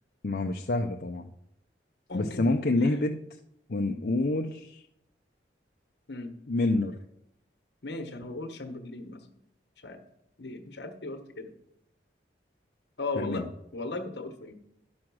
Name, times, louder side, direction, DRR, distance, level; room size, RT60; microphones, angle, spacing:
voice 1, 0.2-1.3 2.1-3.2 3.7-4.8 6.5-7.0 13.2-13.5, left 2 dB, 55° left, 2 dB, 0.6 m, -27 dB
voice 2, 2.1-2.5 2.8-3.0 6.1-6.3 7.8-9.3 9.8-10.0 10.4-11.5 13.0-13.4 13.7-14.5, left 2 dB, 75° left, 7 dB, 1.3 m, -37 dB
10.5 x 6.3 x 6.2 m, 0.79 s
head